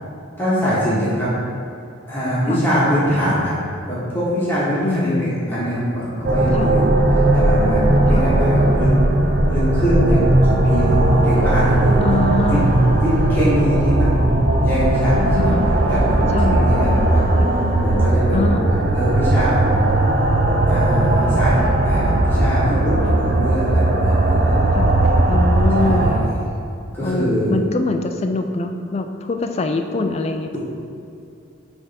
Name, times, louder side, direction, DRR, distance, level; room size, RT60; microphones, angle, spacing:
voice 1, 0.4-1.3 2.1-3.6 3.9-7.0 7.3-8.9 9.4-12.0 13.0-14.3 14.6-15.5 15.9-17.4 17.8-18.5 18.9-20.1 20.7-24.5 25.8-26.3 26.9-27.6, equal, 10° left, -10 dB, 1.5 m, -23 dB
voice 2, 4.8-5.4 6.5-6.7 8.1-8.3 12.0-12.7 15.4-15.7 16.3-16.8 17.4-17.5 18.3-18.6 24.7-25.0 25.3-26.1 27.0-30.6, left 2 dB, 30° left, 6 dB, 0.3 m, -23 dB
sound 1, 6.2-26.2, right 1 dB, 45° right, 0.6 m, -17 dB
8.8 x 3.4 x 4.2 m, 2.6 s
head